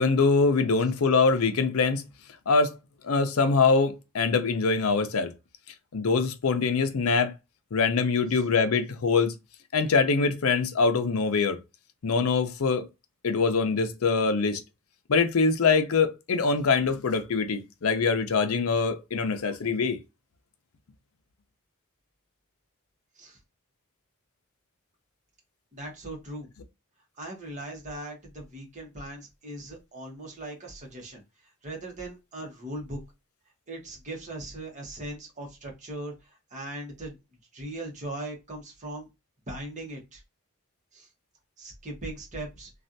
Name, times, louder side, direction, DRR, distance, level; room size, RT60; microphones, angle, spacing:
voice 1, 0.0-2.0 2.5-2.7 3.0-5.3 5.9-7.3 7.7-9.3 9.7-11.6 12.0-12.9 13.2-14.6 15.1-20.0, left 4 dB, 75° left, 0.6 m, -24 dB
voice 2, 25.7-26.5 27.2-31.2 31.6-33.0 33.7-37.1 37.5-39.1 39.5-40.2 40.9-41.1 41.6-42.7, right 1 dB, 35° right, 1.2 m, -39 dB
3.2 x 2.4 x 2.6 m
head